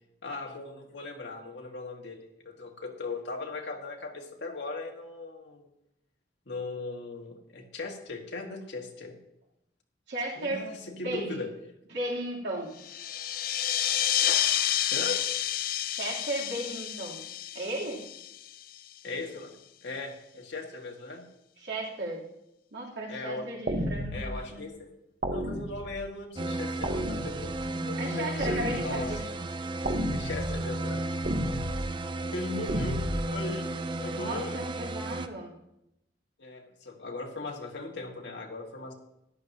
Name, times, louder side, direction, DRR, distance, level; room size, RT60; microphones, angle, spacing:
voice 1, 0.2-5.7 6.4-9.2 10.4-11.5 14.9-15.2 19.0-19.5 19.8-21.2 23.1-23.5 24.1-24.9 25.3-29.3 30.1-31.2 32.3-33.0 33.3-33.7 34.0-34.5 36.4-38.9, left 3 dB, 80° left, 1 dB, 1.8 m, -38 dB
voice 2, 10.1-10.7 11.0-11.4 11.9-12.7 15.9-17.2 17.5-18.0 21.6-22.2 22.7-24.6 28.0-29.2 34.1-35.5, right 1 dB, 85° right, -4 dB, 3.1 m, -35 dB
sound 1, 12.8-18.9, left 11 dB, 50° left, 0.4 m, -30 dB
sound 2, 23.7-24.4 25.2-26.0 26.8-27.7 28.4-29.2 29.8-30.6 31.2-31.9 32.7-33.3, equal, 55° right, 1.1 m, -32 dB
sound 3, 26.4-35.3, right 2 dB, 25° right, 0.5 m, -34 dB
13.5 x 11.0 x 2.8 m, 0.84 s
head